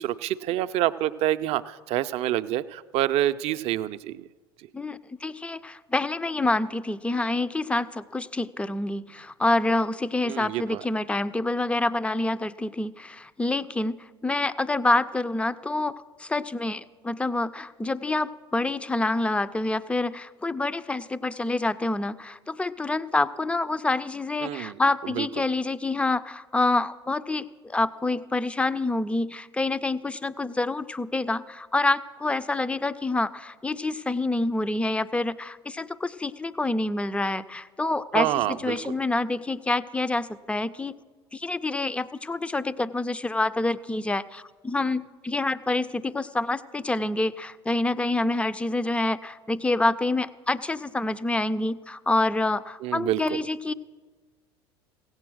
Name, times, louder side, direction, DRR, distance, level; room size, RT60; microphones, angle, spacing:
voice 1, 0.0-4.3 10.2-10.8 24.4-25.3 38.1-38.8 52.8-53.4, right 13 dB, 50° right, 13 dB, 0.5 m, -27 dB
voice 2, 4.7-40.9 41.3-53.7, left 2 dB, 10° left, 15 dB, 0.4 m, -27 dB
16.5 x 8.0 x 6.3 m, 1.3 s
figure-of-eight pair, 70°, 14 cm